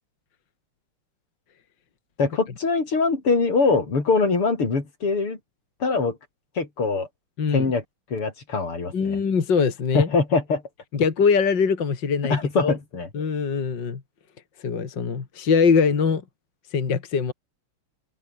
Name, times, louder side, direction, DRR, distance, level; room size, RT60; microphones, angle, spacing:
voice 1, 2.2-5.4 5.8-6.2 6.6-7.1 7.5-7.8 8.1-9.2 9.9-10.6 12.3-13.1, left 4 dB, 80° left, 5.4 m, -23 dB
voice 2, 7.4-7.7 8.9-10.1 10.9-12.7 13.1-14.0 14.6-16.2 16.7-17.3, left 5 dB, 55° left, 2.9 m, -22 dB
open air
omnidirectional pair, 2.4 m